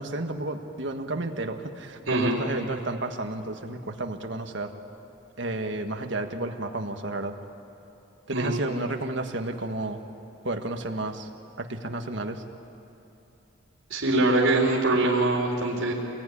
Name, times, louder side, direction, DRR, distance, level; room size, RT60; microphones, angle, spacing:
voice 1, 0.0-4.7 5.4-7.4 8.3-10.0 10.4-11.3 11.6-12.4, right 2 dB, 65° right, 5 dB, 1.6 m, -32 dB
voice 2, 2.1-2.4 8.3-8.6 13.9-15.9, right 2 dB, 85° right, -3 dB, 4.0 m, -23 dB
27.5 x 20.5 x 10.0 m, 2.9 s
head